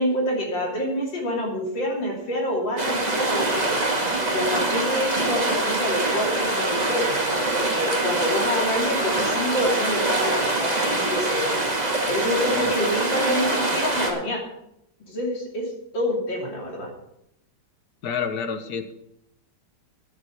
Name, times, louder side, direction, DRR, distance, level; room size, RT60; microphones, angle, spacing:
voice 1, 0.0-3.8 4.3-7.2 7.5-11.6 12.1-14.4 15.1-16.9, equal, 75° left, 0 dB, 3.7 m, -27 dB
sound 1, 2.8-14.1, right 2 dB, 20° right, 1.9 m, -24 dB
voice 2, 18.0-18.9, left 6 dB, 60° left, 8 dB, 1.6 m, -29 dB
9.9 x 8.1 x 8.0 m, 0.80 s
omnidirectional pair, 2.0 m